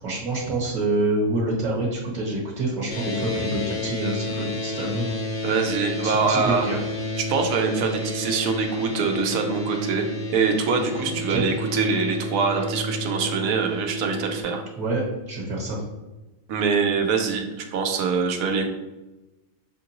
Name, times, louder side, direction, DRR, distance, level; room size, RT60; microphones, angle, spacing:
voice 1, 0.0-5.2 6.0-6.8 11.1-11.4 14.8-15.8, right 2 dB, 35° right, -4 dB, 1.2 m, -27 dB
sound 1, 2.9-14.4, left 1 dB, 65° left, 1.0 m, -31 dB
voice 2, 5.4-6.7 7.2-14.6 16.5-18.7, right 5 dB, 80° right, 4 dB, 1.0 m, -24 dB
5.9 x 2.5 x 2.9 m, 1.1 s
omnidirectional pair, 1.4 m